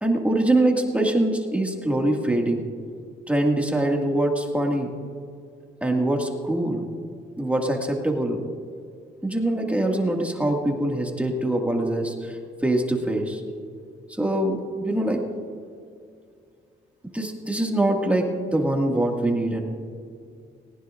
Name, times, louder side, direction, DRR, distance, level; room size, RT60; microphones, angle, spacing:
voice 1, 0.0-2.6 3.3-4.9 5.8-6.8 7.4-8.4 9.2-13.4 14.2-15.2 17.1-18.2 18.5-19.6, right 1 dB, 5° right, 1 dB, 2.0 m, -23 dB
19.5 x 18.0 x 2.5 m, 2.3 s
cardioid pair, 90°, 20 cm